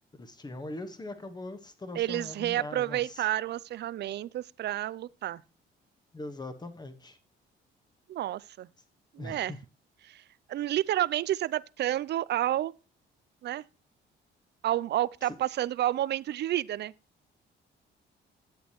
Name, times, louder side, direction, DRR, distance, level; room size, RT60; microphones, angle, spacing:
voice 1, 0.1-3.3 6.1-7.2 9.2-9.6, left 2 dB, 20° left, 1.3 m, -41 dB
voice 2, 1.9-5.4 8.1-8.7 9.1-9.5 10.0-10.2 10.5-12.7 13.4-13.6 14.6-16.9, right 13 dB, 60° right, 0.4 m, -30 dB
10.5 x 8.2 x 3.0 m
cardioid pair, 90°, 20 cm